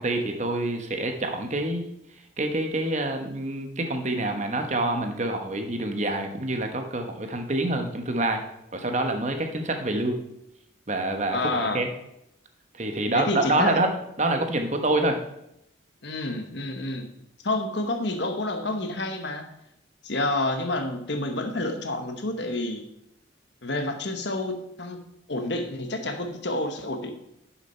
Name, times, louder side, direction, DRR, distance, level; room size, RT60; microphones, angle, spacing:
voice 1, 0.0-1.8 2.4-8.4 8.7-10.2 10.9-11.9 12.8-13.9 14.2-15.2, right 2 dB, 35° right, 5 dB, 1.1 m, -26 dB
voice 2, 11.3-11.8 13.1-13.8 16.0-17.1 17.4-19.5 20.0-22.8 23.6-25.0 25.3-27.1, left 2 dB, 60° left, 6 dB, 1.3 m, -29 dB
11.0 x 7.1 x 4.4 m, 0.81 s
head